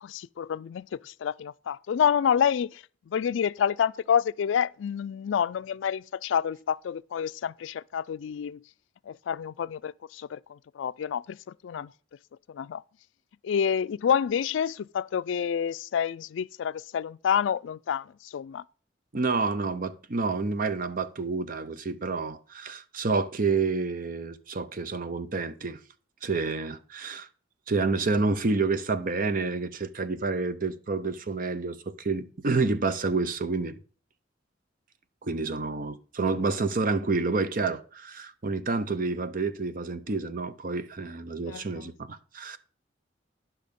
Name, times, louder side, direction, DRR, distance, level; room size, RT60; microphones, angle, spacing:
voice 1, 0.0-8.6 9.1-11.4 11.6-11.9 12.5-12.8 13.4-18.6 41.5-41.9, left 8 dB, 75° left, 0.3 m, -28 dB
voice 2, 19.1-25.8 26.2-27.3 27.7-33.8 35.2-42.6, right 3 dB, 45° right, 0.7 m, -29 dB
10.5 x 5.8 x 5.2 m
head